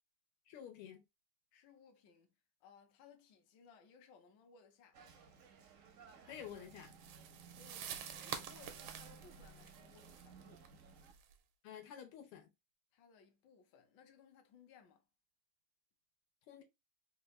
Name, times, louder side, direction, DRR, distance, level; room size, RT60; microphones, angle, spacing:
voice 1, 0.5-1.0 6.2-7.0 11.6-12.5 16.5-16.6, left 9 dB, 90° left, 1.8 m, -50 dB
voice 2, 1.5-2.4 2.6-5.0 7.5-10.7 12.9-15.1, left 6 dB, 70° left, 1.3 m, -63 dB
sound 1, 4.9-11.1, right 5 dB, 75° right, 0.7 m, -59 dB
sound 2, 6.4-11.3, right 9 dB, 90° right, 1.5 m, -49 dB
3.8 x 2.4 x 3.0 m
omnidirectional pair, 2.3 m